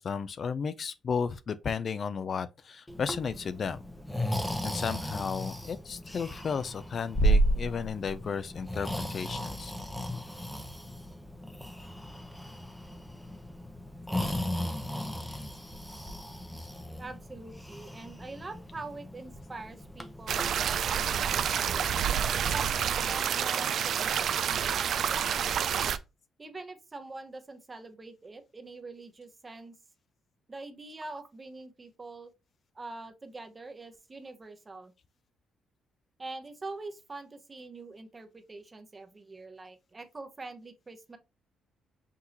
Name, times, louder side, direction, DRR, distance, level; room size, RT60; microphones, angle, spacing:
voice 1, 0.0-3.8 4.6-9.7 16.6-16.7, left 6 dB, 50° left, 0.4 m, -34 dB
Breathing, 2.9-22.6, right 1 dB, 5° left, 0.7 m, -34 dB
voice 2, 17.0-21.8 22.3-25.6 26.4-29.8 30.5-32.3 32.7-34.9 36.2-41.2, right 3 dB, 25° right, 0.9 m, -44 dB
sound 1, 20.3-26.0, right 8 dB, 65° right, 0.4 m, -28 dB
5.9 x 2.7 x 2.9 m
cardioid pair, 90°, 0 cm